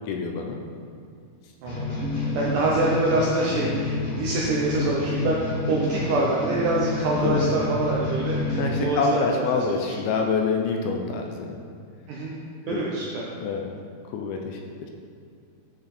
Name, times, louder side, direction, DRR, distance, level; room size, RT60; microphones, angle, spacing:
voice 1, 0.1-0.6 7.2-7.4 8.6-11.6 12.7-12.9 13.4-13.7 14.1-14.6, left 4 dB, 80° left, 2 dB, 2.4 m, -26 dB
sound 1, 1.6-8.8, left 2 dB, 60° left, 2.9 m, -29 dB
voice 2, 1.6-9.8 12.1-12.4 12.7-13.2, right 2 dB, 80° right, -4 dB, 1.9 m, -26 dB
sound 2, 2.0-3.0 3.4-3.9 4.8-5.3 5.7-6.7 7.1-7.6 8.5-9.0, equal, 15° left, 0.6 m, -35 dB
9.0 x 5.8 x 4.3 m, 2.2 s
omnidirectional pair, 4.6 m